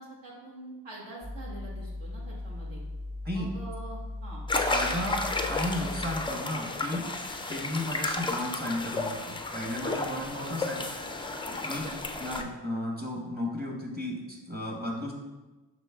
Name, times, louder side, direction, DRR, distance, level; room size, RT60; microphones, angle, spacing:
voice 1, 0.0-2.8 3.3-4.4 11.4-12.1, right 2 dB, 70° right, -4 dB, 1.5 m, -45 dB
sound 1, 1.2-6.2, left 2 dB, 45° right, 1.5 m, -38 dB
sound 2, 4.5-12.4, left 2 dB, 15° left, 0.3 m, -32 dB
voice 2, 4.7-7.1 7.5-10.9 11.6-11.8 12.2-15.1, left 1 dB, 20° right, 0 dB, 1.1 m, -34 dB
6.0 x 3.1 x 2.4 m, 1.1 s
cardioid pair, 50°, 45 cm